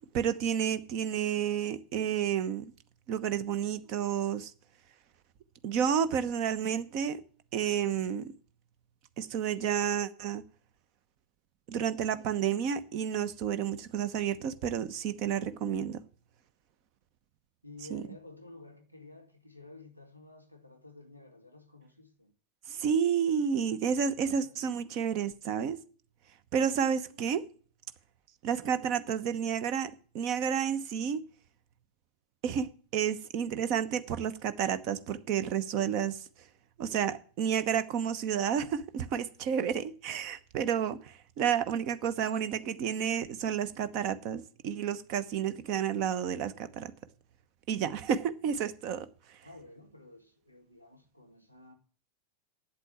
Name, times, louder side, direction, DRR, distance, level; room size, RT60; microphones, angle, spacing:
voice 1, 0.1-2.7 3.1-4.5 5.6-7.2 7.5-8.3 9.2-10.4 11.7-16.0 17.9-18.0 22.7-25.8 26.5-27.4 28.4-31.2 32.4-36.2 36.8-46.9 47.7-49.1, right 8 dB, 40° right, 1.0 m, -30 dB
voice 2, 17.6-22.3 24.4-24.9 49.4-51.7, left 2 dB, 90° right, 1.8 m, -52 dB
8.6 x 8.1 x 9.1 m
figure-of-eight pair, 90°, 0 cm